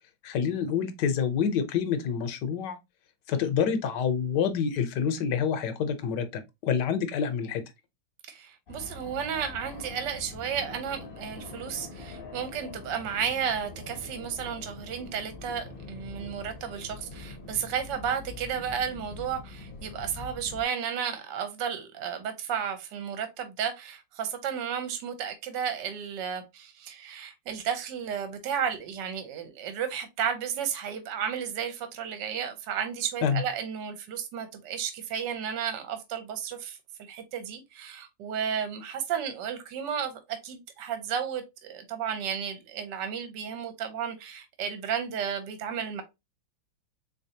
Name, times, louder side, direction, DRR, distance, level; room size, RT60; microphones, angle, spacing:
voice 1, 0.2-2.8 3.3-7.6 33.2-33.4, left 7 dB, 70° left, 1.2 m, -27 dB
voice 2, 8.3-36.8 37.1-46.0, right 8 dB, 65° right, 1.4 m, -33 dB
Fixed-wing aircraft airplane, 8.7-20.6, left 3 dB, 40° left, 0.8 m, -44 dB
3.8 x 3.3 x 2.7 m
omnidirectional pair, 2.2 m